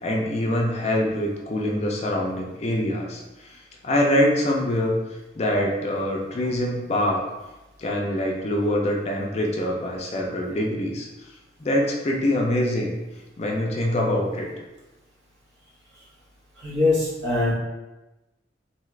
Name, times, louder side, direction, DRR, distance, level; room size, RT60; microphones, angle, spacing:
voice 1, 0.0-3.2 3.8-5.0 5.4-7.2 7.8-11.1 11.6-12.9 13.4-14.5, left 1 dB, 35° left, -1 dB, 0.4 m, -24 dB
voice 2, 16.6-17.5, left 2 dB, 65° right, -5 dB, 0.9 m, -22 dB
2.7 x 2.4 x 3.1 m, 1.1 s
head